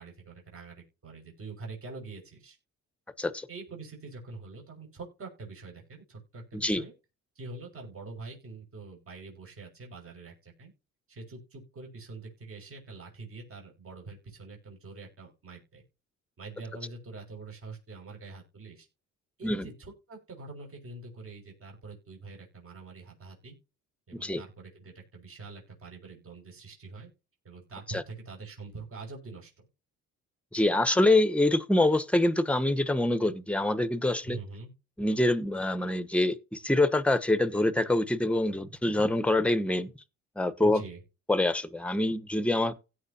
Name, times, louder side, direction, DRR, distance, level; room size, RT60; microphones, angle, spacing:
voice 1, 0.0-2.6 3.5-6.9 7.3-10.7 11.1-15.8 16.4-18.9 19.4-23.5 24.1-27.1 27.4-29.6 34.2-34.7 40.6-41.0, right 3 dB, 45° right, 6.4 m, -45 dB
voice 2, 6.5-6.8 19.4-19.7 24.1-24.4 30.5-34.4 35.0-39.9 40.4-40.8 41.3-42.7, left 1 dB, 5° left, 1.1 m, -25 dB
16.5 x 6.3 x 2.9 m
cardioid pair, 90°, 30 cm